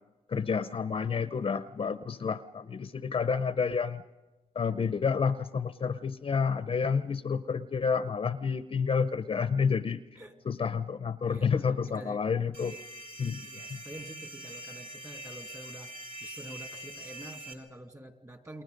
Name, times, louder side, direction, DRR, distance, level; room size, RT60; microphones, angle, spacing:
voice 1, 0.3-4.0 4.5-10.0 10.5-12.7 13.2-13.8, left 6 dB, 40° left, 13 dB, 0.7 m, -29 dB
voice 2, 11.3-12.2 12.7-12.8 13.4-15.9 16.2-18.6, right 1 dB, 20° right, 6 dB, 2.3 m, -47 dB
sound 1, 12.5-17.5, right 1 dB, 40° right, 4.0 m, -44 dB
28.5 x 22.0 x 5.3 m, 1.1 s
cardioid pair, 90°, 15 cm